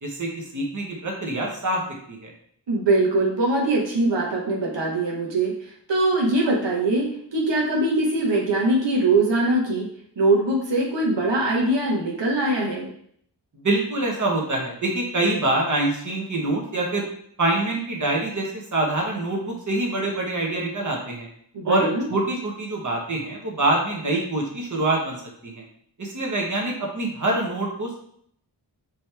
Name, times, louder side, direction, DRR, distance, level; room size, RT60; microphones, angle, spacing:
voice 1, 0.0-1.8 2.1-2.3 13.5-17.1 17.4-21.3 21.6-25.2 25.4-25.6 26.0-28.0, right 2 dB, 45° right, -1 dB, 1.2 m, -25 dB
voice 2, 2.7-9.9 10.2-12.9 21.5-22.1, right 2 dB, 85° right, -3 dB, 1.1 m, -22 dB
5.3 x 3.0 x 3.4 m, 0.66 s
wide cardioid pair, 60°, 42 cm